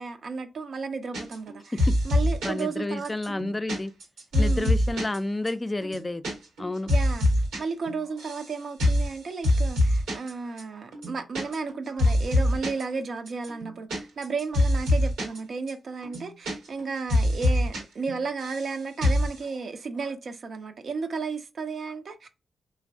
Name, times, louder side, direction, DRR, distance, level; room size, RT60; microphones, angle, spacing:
voice 1, 0.0-3.1 4.3-4.8 6.9-7.3 7.6-22.3, right 4 dB, 65° right, 0.5 m, -33 dB
sound 1, 1.1-1.5 1.8-2.6 3.0-5.2 5.5-5.6 5.8-6.3 6.6-7.6 7.9-8.5 8.8-9.1 9.4-10.3 10.6-10.7 10.9-11.7 12.0-12.8 13.3-15.4 15.7-15.8 16.0-16.8 17.1-17.8 18.1-18.7 19.0-19.3, left 1 dB, 90° right, 1.0 m, -24 dB
voice 2, 2.4-3.9 4.4-6.2 6.6-6.9, left 2 dB, 25° left, 0.3 m, -30 dB
3.2 x 2.0 x 2.6 m
supercardioid pair, 40°, 0 cm